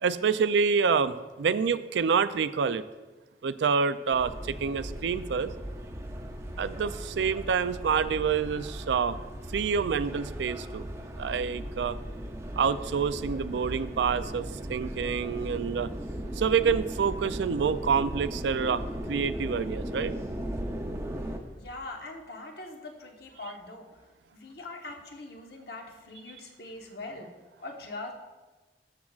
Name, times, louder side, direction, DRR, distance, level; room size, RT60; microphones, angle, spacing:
voice 1, 0.0-2.8 3.4-5.5 6.6-9.2 9.5-10.9 11.1-12.0 12.6-15.9 16.4-18.8 19.1-20.1, right 6 dB, 80° right, 14 dB, 0.4 m, -27 dB
sound 1, 4.1-21.4, equal, 15° right, 0.6 m, -37 dB
voice 2, 21.6-23.9 24.3-27.3 27.6-28.1, left 2 dB, 60° left, 2 dB, 1.1 m, -42 dB
13.0 x 7.3 x 2.4 m, 1.2 s
head